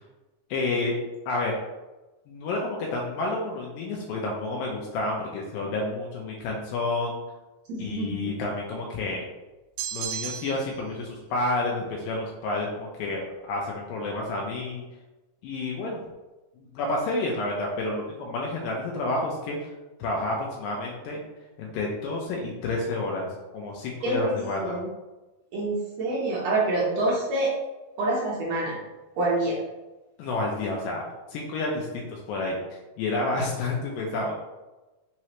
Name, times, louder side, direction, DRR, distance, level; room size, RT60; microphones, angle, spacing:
voice 1, 0.5-1.0 1.3-1.5 2.3-7.2 7.8-9.2 9.9-13.2 13.5-14.8 15.4-16.0 16.6-19.7 20.0-21.2 21.6-23.3 23.5-24.7 30.2-31.0 31.3-32.6 33.0-34.3, left 2 dB, 85° left, -1 dB, 2.3 m, -29 dB
voice 2, 7.7-8.2 24.0-24.9 25.5-27.5 28.0-28.8 29.2-29.6, right 2 dB, 70° right, -4 dB, 1.6 m, -26 dB
sound 1, 9.8-10.8, right 9 dB, 85° right, 1.7 m, -33 dB
5.6 x 3.1 x 3.0 m, 1.1 s
omnidirectional pair, 4.1 m